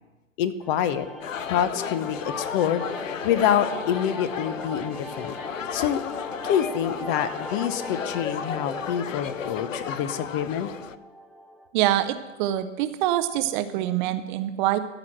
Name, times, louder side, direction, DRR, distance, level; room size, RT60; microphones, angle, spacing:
voice 1, 0.4-1.1 1.5-2.8 3.2-5.4 5.7-6.0 6.4-10.7, left 9 dB, 40° left, 13 dB, 0.8 m, -26 dB
sound 1, 0.6-11.7, equal, ahead, 0.4 m, -39 dB
sound 2, 1.2-11.0, left 8 dB, 90° left, 0.5 m, -34 dB
voice 2, 11.7-14.8, right 13 dB, 40° right, 11 dB, 0.6 m, -25 dB
14.0 x 4.9 x 7.5 m, 1.1 s
figure-of-eight pair, 105°, 38 cm